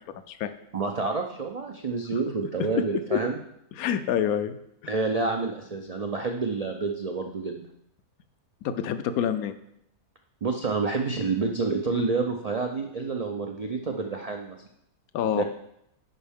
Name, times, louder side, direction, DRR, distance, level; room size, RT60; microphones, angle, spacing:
voice 1, 0.1-0.5 2.1-2.2 3.1-3.2 3.8-4.6 8.6-9.6 15.1-15.4, left 9 dB, 75° left, 11 dB, 1.0 m, -27 dB
voice 2, 0.7-3.4 4.9-7.6 10.4-14.6 15.3-15.4, right 4 dB, 80° right, 2 dB, 0.3 m, -28 dB
9.5 x 5.3 x 3.5 m, 0.76 s
omnidirectional pair, 1.6 m